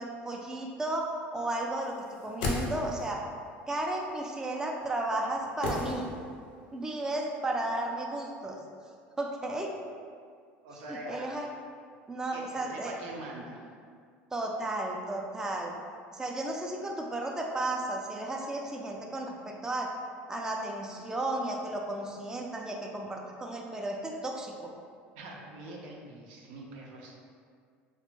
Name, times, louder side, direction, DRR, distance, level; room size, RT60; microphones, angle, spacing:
voice 1, 0.0-1.9 2.2-3.2 3.7-6.1 6.7-8.6 9.2-9.7 10.9-11.5 12.1-12.9 14.3-15.7 16.1-19.9 20.3-24.7, right 2 dB, 10° right, 0 dB, 0.3 m, -34 dB
sound 1, 2.0-3.2 5.6-6.5 6.8-6.9, left 2 dB, 80° left, 0.5 m, -34 dB
voice 2, 10.6-11.5 12.3-13.6 25.2-27.3, right 1 dB, 75° right, -1 dB, 0.4 m, -43 dB
2.4 x 2.1 x 3.0 m, 2.1 s
supercardioid pair, 85°, 6 cm